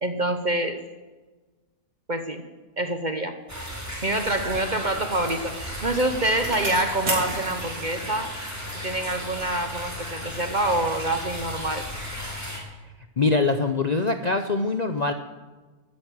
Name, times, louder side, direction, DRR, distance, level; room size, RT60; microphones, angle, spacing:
voice 1, 0.0-0.8 2.1-2.4 2.8-3.3 4.0-8.3 8.8-11.9, right 1 dB, 40° right, 7 dB, 0.8 m, -26 dB
sound 1, 3.5-12.6, left 1 dB, 10° right, 3.3 m, -35 dB
Bicycle, 4.7-9.6 10.0-10.1, right 1 dB, 85° right, 4.4 m, -35 dB
voice 2, 13.2-15.1, left 3 dB, 40° left, 6 dB, 0.6 m, -23 dB
13.0 x 9.5 x 9.3 m, 1.3 s
omnidirectional pair, 1.6 m